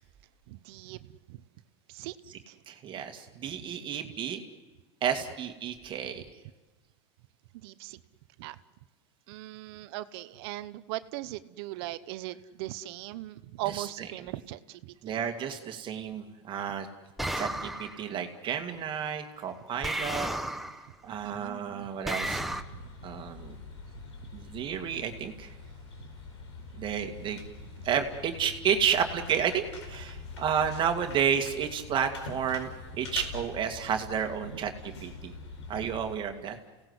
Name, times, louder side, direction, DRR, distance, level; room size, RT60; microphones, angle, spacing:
voice 1, 0.5-1.4 1.9-2.2 2.5-2.6 6.1-6.2 7.5-8.0 8.4-8.6 9.3-15.1 21.2-21.6 22.7-22.8 23.2-23.3 27.7-27.8 34.4-34.6, right 16 dB, 60° right, 14 dB, 1.0 m, -39 dB
voice 2, 2.7-4.4 5.0-6.2 13.6-14.3 15.0-16.9 17.4-20.3 21.0-22.4 23.0-23.6 24.3-25.5 26.8-27.4 27.8-34.7 35.0-35.3 35.7-36.6, right 8 dB, 35° right, 5 dB, 2.1 m, -31 dB
sound 1, 17.2-18.0 19.8-20.9 22.0-22.6, right 1 dB, ahead, 1.3 m, -33 dB
sound 2, 22.1-36.2, left 4 dB, 85° left, 4.9 m, -44 dB
29.5 x 17.5 x 8.1 m, 1.2 s
hypercardioid pair, 110°, 14 cm